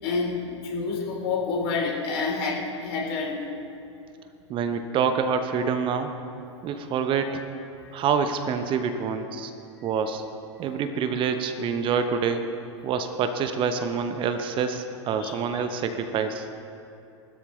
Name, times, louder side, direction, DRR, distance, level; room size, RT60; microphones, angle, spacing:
voice 1, 0.0-3.4 15.2-15.3, left 4 dB, 55° left, -2 dB, 3.4 m, -28 dB
voice 2, 4.5-6.1 6.6-7.4 7.9-9.5 9.8-10.2 10.6-12.4 12.8-16.5, right 6 dB, 35° right, 7 dB, 0.9 m, -26 dB
19.5 x 13.0 x 3.2 m, 2.7 s
figure-of-eight pair, 95°, 16 cm